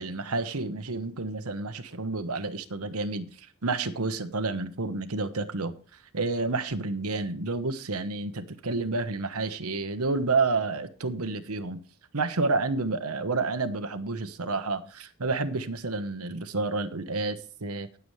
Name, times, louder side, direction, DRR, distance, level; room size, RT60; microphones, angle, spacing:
voice 1, 0.0-3.3 3.6-5.7 6.1-11.8 12.1-17.9, right 3 dB, 80° right, 1.1 m, -30 dB
19.0 x 7.0 x 3.2 m
head